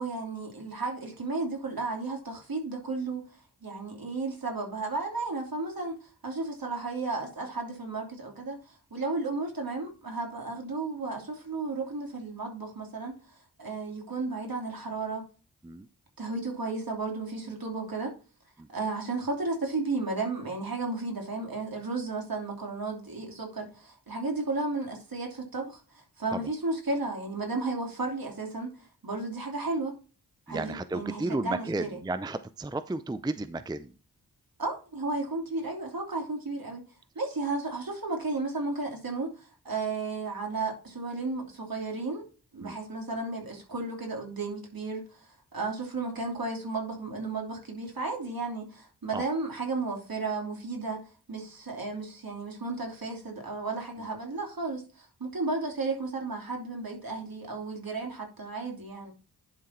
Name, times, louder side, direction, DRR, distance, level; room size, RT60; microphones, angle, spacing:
voice 1, 0.0-13.3 13.6-15.3 16.2-18.1 18.7-29.9 30.5-32.0 34.6-36.8 37.1-42.3 42.5-51.0 51.3-59.1, right 3 dB, 60° right, 2.9 m, -33 dB
voice 2, 30.5-33.9 42.6-42.8 49.1-49.2 54.0-54.1, right 2 dB, 10° right, 0.5 m, -33 dB
11.0 x 3.7 x 4.3 m
cardioid pair, 50°, 40 cm